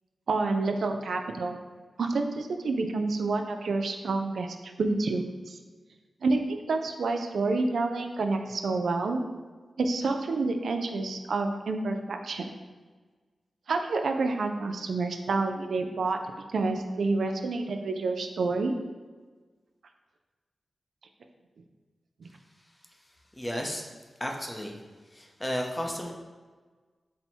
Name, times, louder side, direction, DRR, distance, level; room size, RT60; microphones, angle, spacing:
voice 1, 0.3-1.6 2.0-5.6 6.2-9.2 9.8-12.5 13.7-18.8 22.2-22.3, right 3 dB, 85° right, 5 dB, 0.3 m, -28 dB
voice 2, 23.3-23.9 24.2-24.8 25.1-26.1, equal, 15° left, 1 dB, 0.6 m, -33 dB
4.2 x 2.0 x 4.3 m, 1.4 s
cardioid pair, 70°, 0 cm